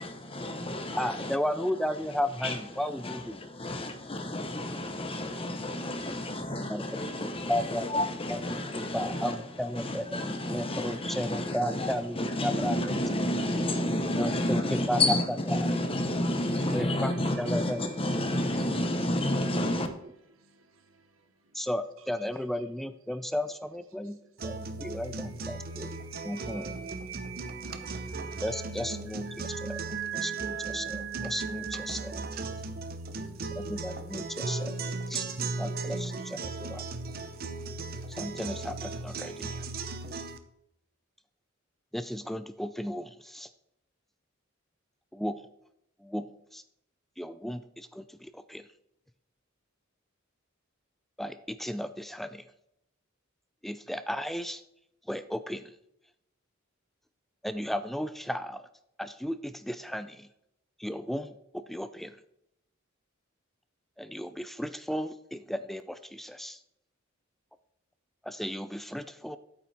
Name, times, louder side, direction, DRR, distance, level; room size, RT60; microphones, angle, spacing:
voice 1, 0.0-1.4 2.4-19.9, left 1 dB, 30° left, 1.0 m, -30 dB
voice 2, 1.0-3.4 6.7-6.9 7.5-13.0 14.2-15.0 16.7-17.1 17.4-17.9 21.5-25.9 26.2-26.7 28.4-29.8 30.2-32.2 33.5-34.7 35.1-35.3 35.6-36.8 38.1-39.7 41.9-43.5 45.1-45.4 46.0-46.3 46.5-46.6 47.2-48.6 51.2-52.4 53.6-54.6 55.1-55.6 57.4-58.7 59.0-60.3 60.8-62.2 64.0-66.6 68.2-69.4, equal, ahead, 0.3 m, -34 dB
voice 3, 16.5-18.9 20.4-21.6 22.3-22.6 24.2-24.3 24.6-24.7 25.2-32.4 33.2-33.3, right 11 dB, 80° right, 1.1 m, -43 dB
sound 1, 24.4-40.4, right 3 dB, 50° right, 0.7 m, -37 dB
8.8 x 8.5 x 3.4 m
head